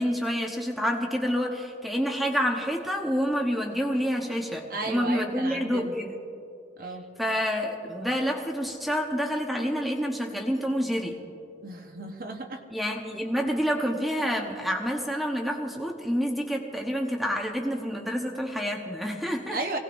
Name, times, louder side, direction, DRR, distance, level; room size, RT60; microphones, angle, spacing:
voice 1, 0.0-6.2 7.2-11.2 12.7-19.6, equal, ahead, 0 dB, 1.0 m, -28 dB
voice 2, 4.7-5.9 6.8-7.0 11.6-12.6 19.5-19.8, right 2 dB, 50° right, 2 dB, 1.1 m, -34 dB
24.0 x 17.5 x 2.6 m, 2.6 s
head